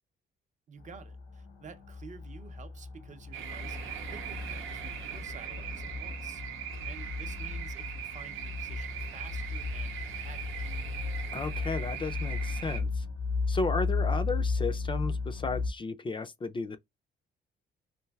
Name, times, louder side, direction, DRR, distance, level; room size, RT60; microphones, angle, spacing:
voice 1, 0.7-10.8, right 6 dB, 40° right, 0.6 m, -51 dB
sound 1, 0.8-15.7, left 4 dB, 85° left, 0.8 m, -35 dB
sound 2, 3.3-12.8, right 9 dB, 90° right, 0.7 m, -40 dB
voice 2, 11.3-13.1 13.5-16.8, left 3 dB, 25° left, 0.4 m, -34 dB
3.2 x 2.5 x 2.2 m
cardioid pair, 90°, 20 cm